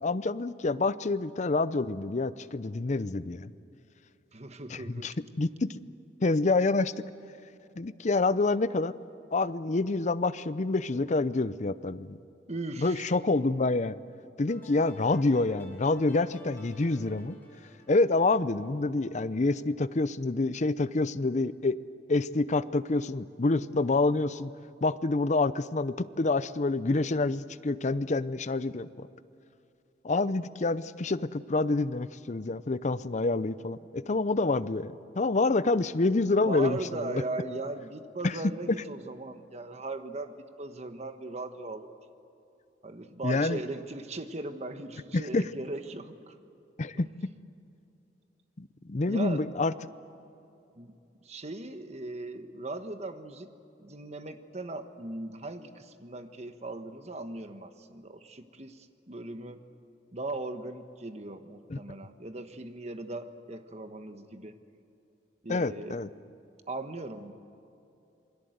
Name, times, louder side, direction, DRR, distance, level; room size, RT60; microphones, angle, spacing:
voice 1, 0.0-3.5 4.7-5.8 6.2-7.0 7.8-8.9 9.3-12.2 12.8-14.0 14.4-17.4 17.9-21.8 22.1-24.5 24.8-29.1 30.0-37.2 38.2-38.4 38.7-38.8 43.2-43.6 45.1-45.5 46.8-47.1 48.6-49.7 61.7-61.8 65.5-66.1, left 3 dB, 40° left, 15 dB, 0.6 m, -27 dB
voice 2, 4.3-5.2 12.5-13.1 36.4-41.9 42.8-46.3 46.9-47.0 49.1-49.5 50.8-51.0 51.2-53.5 53.8-59.6 60.1-64.6 65.4-66.0 66.7-67.3, right 2 dB, 40° right, 8 dB, 1.3 m, -38 dB
sound 1, 14.5-19.6, left 1 dB, 10° left, 5.3 m, -54 dB
27.5 x 21.5 x 8.0 m, 2.7 s
head